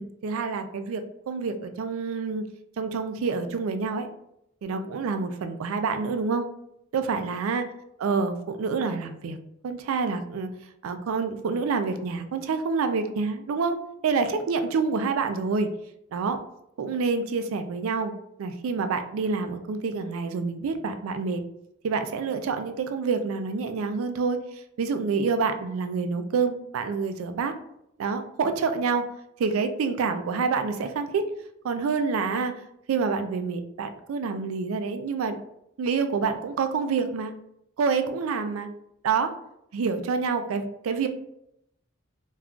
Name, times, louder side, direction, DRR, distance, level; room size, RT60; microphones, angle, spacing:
voice 1, 0.0-2.4 2.8-4.1 4.6-6.5 6.9-7.6 8.0-9.4 9.6-10.5 10.8-13.8 14.0-15.7 16.1-16.4 16.8-21.4 21.8-27.5 28.0-29.1 29.4-31.3 31.6-32.6 32.9-35.4 35.8-37.3 37.8-38.7 39.0-39.3 39.7-41.1, right 5 dB, 85° right, 8 dB, 0.3 m, -27 dB
2.3 x 2.3 x 3.6 m, 0.78 s
head